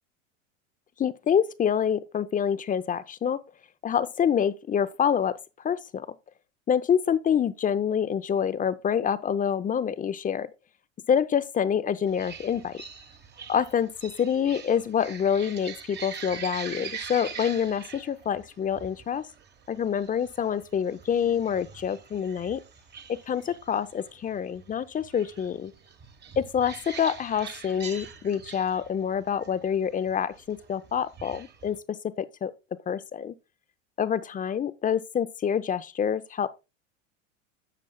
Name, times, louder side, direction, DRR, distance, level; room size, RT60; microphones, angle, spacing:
voice 1, 1.0-3.4 3.8-5.3 5.6-6.1 6.7-10.5 11.1-12.8 13.5-19.3 19.7-22.6 23.1-25.7 26.4-32.5 32.9-33.3 34.0-36.5, left 8 dB, 20° left, 0.6 m, -27 dB
sound 1, 12.1-31.8, right 6 dB, 25° right, 1.2 m, -44 dB
11.5 x 7.3 x 2.3 m
hypercardioid pair, 85°, 37 cm